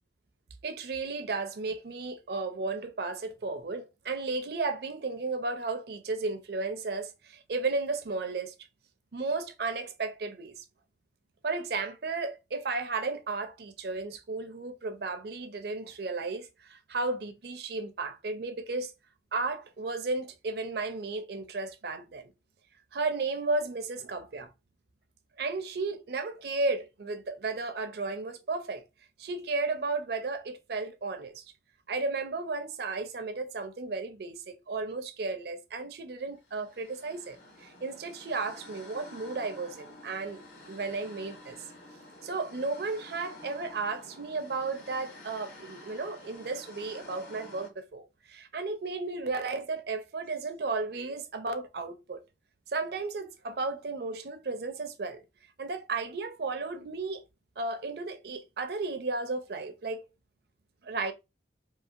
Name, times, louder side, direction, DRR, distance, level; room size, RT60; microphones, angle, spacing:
voice 1, 0.6-8.5 9.1-10.5 11.4-18.9 19.3-22.3 22.9-24.5 25.4-28.8 29.2-31.4 31.9-40.4 40.7-41.6 42.2-52.2 52.7-55.2 55.6-57.2 57.6-60.1 60.8-61.1, right 3 dB, 55° right, 0.5 m, -34 dB
sound 1, 36.4-47.7, left 1 dB, 45° left, 1.0 m, -50 dB
2.8 x 2.8 x 2.4 m
head